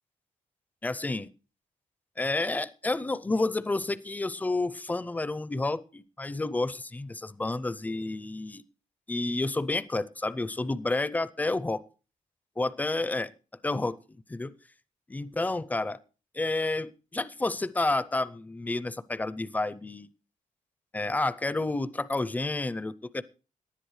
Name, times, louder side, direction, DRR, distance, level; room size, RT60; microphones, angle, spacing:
voice 1, 0.8-1.3 2.2-8.6 9.1-11.8 12.6-13.3 13.6-14.5 15.1-16.0 16.3-20.1 20.9-23.2, left 2 dB, 10° left, 17 dB, 0.5 m, -30 dB
18.5 x 11.0 x 3.2 m, 0.34 s
wide cardioid pair, 140°, 13 cm